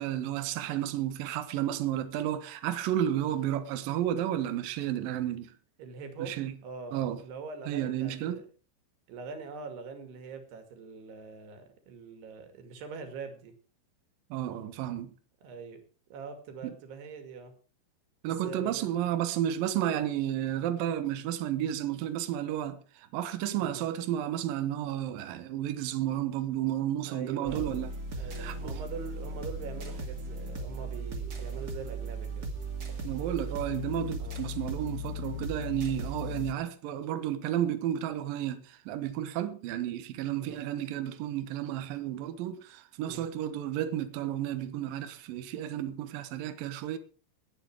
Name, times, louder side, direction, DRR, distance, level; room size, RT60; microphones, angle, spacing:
voice 1, 0.0-5.5 6.2-6.5 6.9-7.2 7.7-8.4 14.3-15.1 16.6-16.7 18.2-27.9 28.2-28.8 33.0-47.0, right 11 dB, 80° right, 2.0 m, -32 dB
voice 2, 5.8-6.3 6.6-8.4 9.1-13.6 15.4-15.8 16.1-17.5 18.3-18.9 23.6-23.8 27.1-27.7 28.2-32.5 34.2-34.4 40.4-40.6 43.0-43.3, right 5 dB, 60° right, 4.1 m, -43 dB
sound 1, 27.4-36.5, right 1 dB, 40° right, 1.3 m, -37 dB
20.0 x 9.0 x 4.8 m
omnidirectional pair, 5.7 m